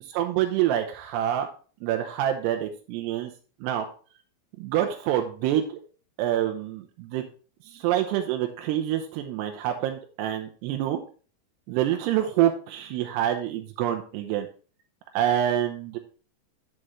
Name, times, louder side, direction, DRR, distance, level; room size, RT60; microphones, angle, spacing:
voice 1, 0.1-1.5 1.8-3.3 3.6-3.9 4.6-5.8 6.2-7.2 7.6-11.0 11.7-14.5 15.1-16.0, right 11 dB, 85° right, 5 dB, 2.5 m, -26 dB
11.0 x 6.3 x 3.1 m, 0.40 s
omnidirectional pair, 5.3 m